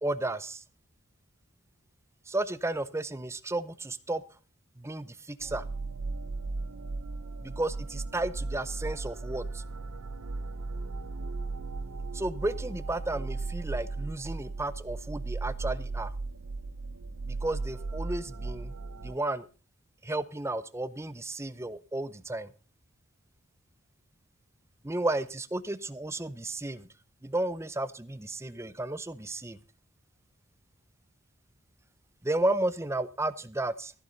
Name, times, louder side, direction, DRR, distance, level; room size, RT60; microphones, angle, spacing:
voice 1, 0.0-0.6 2.3-4.2 4.8-5.7 7.4-9.6 12.1-16.1 17.3-18.7 19.0-19.5 20.0-22.5 24.8-26.9 27.2-29.6 32.2-33.9, right 2 dB, 10° right, 15 dB, 0.6 m, -33 dB
sound 1, 5.4-19.2, right 3 dB, 80° right, 0.7 m, -36 dB
14.0 x 12.0 x 4.0 m, 0.36 s
head